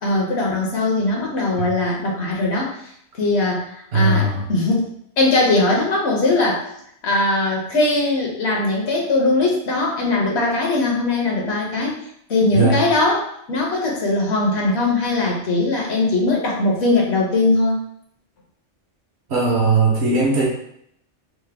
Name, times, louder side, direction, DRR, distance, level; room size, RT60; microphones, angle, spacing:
voice 1, 0.0-2.9 3.2-6.6 7.0-12.0 12.3-17.8, left 2 dB, 65° left, -1 dB, 1.0 m, -20 dB
voice 2, 3.9-4.4 12.5-12.8 19.3-20.5, right 3 dB, 65° right, -2 dB, 1.0 m, -18 dB
3.3 x 2.1 x 3.3 m, 0.71 s
omnidirectional pair, 1.3 m